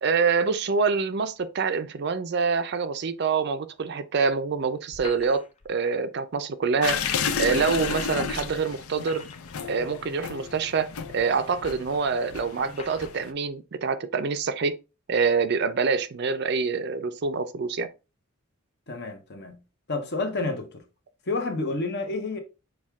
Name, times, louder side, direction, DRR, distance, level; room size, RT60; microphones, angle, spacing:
voice 1, 0.0-7.0 7.4-9.2 9.7-10.9 11.1-14.8 15.1-17.9, right 5 dB, 50° right, 0.4 m, -26 dB
sound 1, 4.9-5.7 7.4-7.5 8.8-9.7 10.6-10.7 11.6-11.7 12.7-13.2, left 4 dB, 30° left, 0.4 m, -44 dB
sound 2, 6.8-13.3, left 6 dB, 80° left, 0.5 m, -32 dB
voice 2, 18.9-19.6 19.9-20.8 21.3-22.4, left 3 dB, 50° left, 0.9 m, -29 dB
6.3 x 2.3 x 3.5 m
head